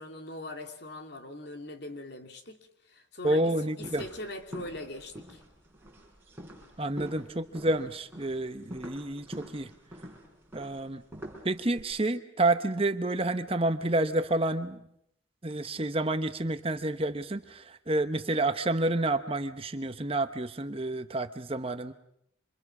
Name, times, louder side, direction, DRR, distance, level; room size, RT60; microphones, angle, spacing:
voice 1, 0.0-2.6 2.9-3.5 3.8-5.4, left 2 dB, 55° left, 5 dB, 2.8 m, -41 dB
voice 2, 3.2-4.0 6.8-9.7 10.5-11.0 11.4-14.8 15.4-21.9, right 2 dB, 30° right, 9 dB, 1.0 m, -29 dB
Steps on a wooden floor, 3.8-11.8, equal, 10° right, 6.2 m, -46 dB
28.5 x 26.5 x 6.1 m, 0.76 s
head